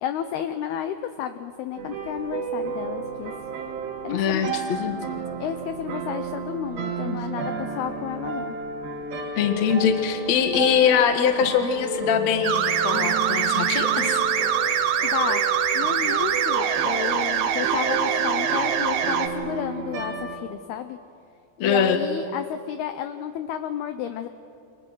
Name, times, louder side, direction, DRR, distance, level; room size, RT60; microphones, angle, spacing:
voice 1, 0.0-3.3 4.0-4.5 5.4-8.6 15.0-15.4 15.7-21.0 21.6-24.3, left 10 dB, 85° left, 9 dB, 2.2 m, -31 dB
sound 1, 1.8-20.4, right 4 dB, 55° right, 3.6 m, -32 dB
voice 2, 4.1-5.0 7.1-7.2 9.4-14.2 21.6-22.0, left 7 dB, 55° left, 6 dB, 2.0 m, -22 dB
sound 2, 12.4-19.3, right 9 dB, 75° right, 3.3 m, -24 dB
29.5 x 26.0 x 6.2 m, 2.5 s
omnidirectional pair, 5.6 m